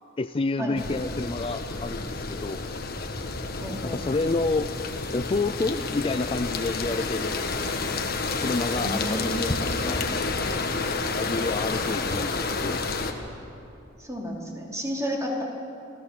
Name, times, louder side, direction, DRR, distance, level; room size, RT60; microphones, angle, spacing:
voice 1, 0.2-2.6 3.8-4.7 5.1-7.4 8.4-10.1 11.1-12.8, left 3 dB, 30° left, 11 dB, 0.4 m, -29 dB
sound 1, 0.8-13.1, left 3 dB, 50° left, 1.5 m, -30 dB
voice 2, 3.6-4.0 8.7-10.0 14.0-15.4, equal, 15° right, -1 dB, 3.1 m, -32 dB
29.0 x 14.0 x 6.8 m, 2.6 s
head